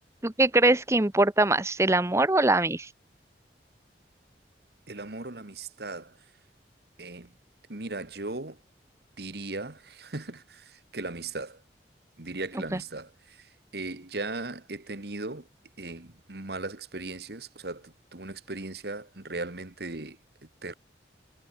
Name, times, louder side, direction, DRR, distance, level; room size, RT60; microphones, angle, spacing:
voice 1, 0.2-2.9, right 2 dB, 15° right, 0.8 m, -22 dB
voice 2, 4.9-6.2 7.0-7.3 7.7-8.6 9.2-11.6 12.2-15.5 15.8-20.2 20.6-20.7, right 2 dB, 60° right, 1.7 m, -38 dB
head